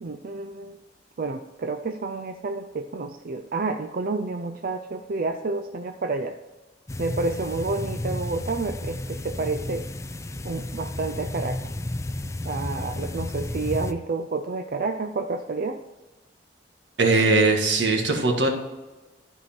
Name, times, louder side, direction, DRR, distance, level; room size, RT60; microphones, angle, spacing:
voice 1, 0.0-0.8 1.2-6.4 7.0-9.8 10.4-11.7 12.4-15.8, right 3 dB, 55° right, 6 dB, 0.5 m, -29 dB
sound 1, 6.9-13.9, left 1 dB, 15° left, 0.4 m, -32 dB
voice 2, 17.0-18.5, right 3 dB, 80° right, 2 dB, 1.6 m, -20 dB
12.5 x 4.9 x 4.4 m, 1.2 s
head